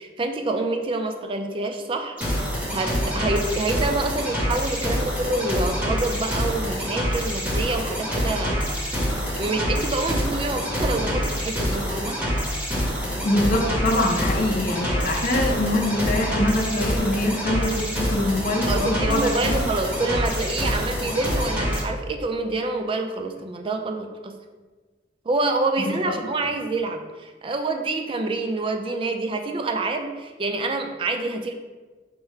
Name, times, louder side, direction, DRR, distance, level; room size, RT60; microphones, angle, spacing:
voice 1, 0.0-2.2 2.7-8.6 9.0-12.2 18.7-24.4 25.3-31.5, right 2 dB, 30° right, 5 dB, 0.3 m, -27 dB
sound 1, 2.2-21.8, equal, 5° right, 0.7 m, -26 dB
voice 2, 13.2-19.6 26.0-26.1, left 1 dB, 50° left, 0 dB, 0.5 m, -24 dB
4.6 x 2.1 x 4.7 m, 1.3 s
head